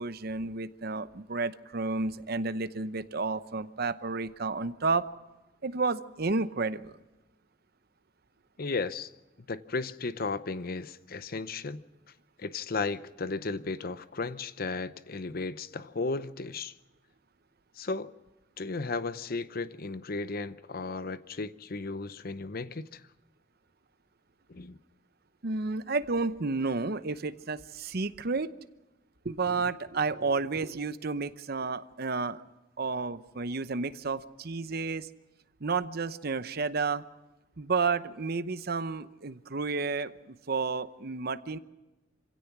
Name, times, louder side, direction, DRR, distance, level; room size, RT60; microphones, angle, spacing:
voice 1, 0.0-5.1 5.6-7.0 25.4-28.5 29.2-32.4 32.8-35.1 35.6-37.0 37.6-41.6, right 4 dB, 50° right, 0.8 m, -31 dB
voice 2, 8.6-9.1 9.5-11.8 12.4-16.7 17.8-18.1 18.6-23.0 24.5-24.8, left 3 dB, 50° left, 0.7 m, -35 dB
26.5 x 16.5 x 6.0 m
head